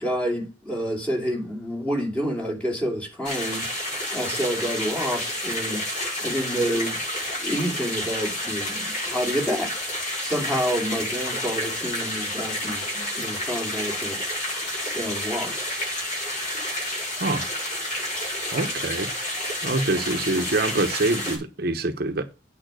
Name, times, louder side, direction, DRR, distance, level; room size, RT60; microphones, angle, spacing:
voice 1, 0.0-3.7 4.1-5.8 6.2-7.0 7.4-9.7 10.2-14.2 14.9-15.7, equal, 5° left, 2.7 m, -28 dB
sound 1, 3.2-21.4, left 1 dB, 45° left, 6.8 m, -30 dB
voice 2, 18.5-19.1 19.6-22.2, right 2 dB, 60° right, 1.0 m, -25 dB
9.1 x 5.6 x 6.3 m
head